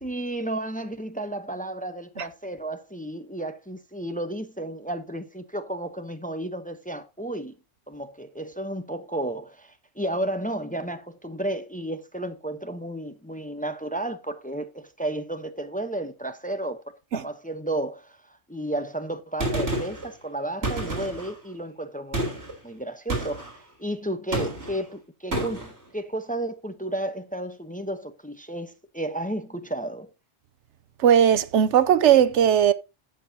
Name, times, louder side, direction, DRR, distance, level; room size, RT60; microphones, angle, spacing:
voice 1, 0.0-7.5 7.9-22.4 22.6-30.1, right 1 dB, 10° left, 0.8 m, -32 dB
Gunshot gunfire, 19.4-20.1 20.6-21.3 22.1-22.5 23.1-23.5 24.3-24.8 25.3-25.7, right 1 dB, 65° right, 4.1 m, -29 dB
voice 2, 31.0-32.7, right 9 dB, 85° right, 1.0 m, -18 dB
12.5 x 7.8 x 2.8 m
omnidirectional pair, 1.2 m